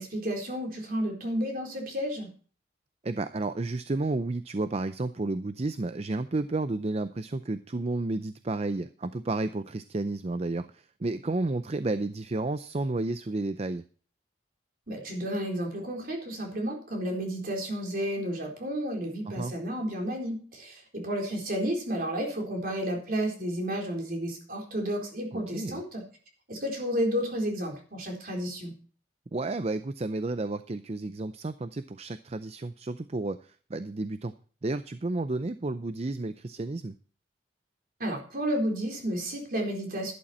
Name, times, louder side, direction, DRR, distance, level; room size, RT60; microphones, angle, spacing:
voice 1, 0.0-2.3 14.9-26.0 26.5-28.7 38.0-40.1, equal, 55° right, 1 dB, 4.0 m, -31 dB
voice 2, 3.0-13.8 19.3-19.5 25.3-25.8 29.3-34.3 34.6-36.9, right 2 dB, 35° right, 11 dB, 0.5 m, -31 dB
11.5 x 11.5 x 4.3 m, 0.42 s
head